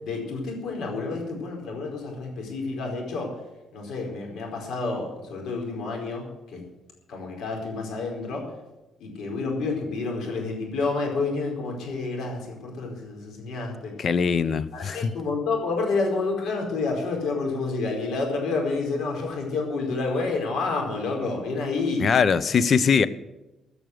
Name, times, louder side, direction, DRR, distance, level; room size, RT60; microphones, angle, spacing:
voice 1, 0.0-3.3 3.7-6.6 7.1-8.5 9.0-13.9 14.7-22.1, left 3 dB, 75° left, 1 dB, 4.8 m, -29 dB
voice 2, 14.0-15.1 22.0-23.1, left 6 dB, 50° left, 16 dB, 0.7 m, -21 dB
16.5 x 6.5 x 7.7 m, 1.0 s
cardioid pair, 90°, 0 cm